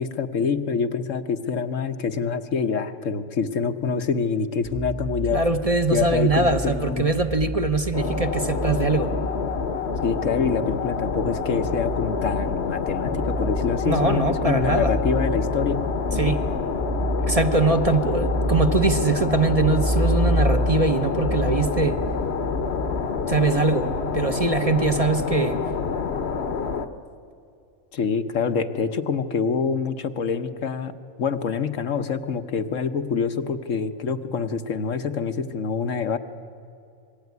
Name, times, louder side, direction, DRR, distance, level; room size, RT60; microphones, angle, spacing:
voice 1, 0.0-5.4 5.9-7.1 10.0-15.8 16.1-16.3 27.9-36.2, left 5 dB, 75° left, 8 dB, 1.4 m, -26 dB
sound 1, 4.6-23.0, equal, 5° right, 1.1 m, -30 dB
voice 2, 5.3-9.1 13.8-14.9 16.2-16.4 17.2-22.0 23.3-25.6, right 3 dB, 30° right, 6 dB, 1.0 m, -22 dB
sound 2, 7.9-26.9, left 5 dB, 55° left, 1.2 m, -28 dB
27.0 x 21.0 x 9.5 m, 2.5 s
omnidirectional pair, 1.3 m